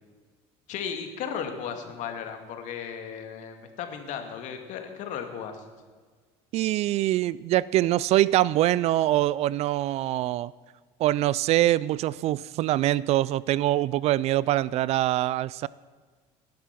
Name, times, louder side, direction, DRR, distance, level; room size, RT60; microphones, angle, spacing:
voice 1, 0.7-5.6, left 7 dB, 60° left, 6 dB, 2.2 m, -35 dB
voice 2, 6.5-10.5 11.0-15.7, right 14 dB, 50° right, 21 dB, 0.4 m, -24 dB
18.5 x 10.5 x 6.0 m, 1.5 s
cardioid pair, 125°, 14 cm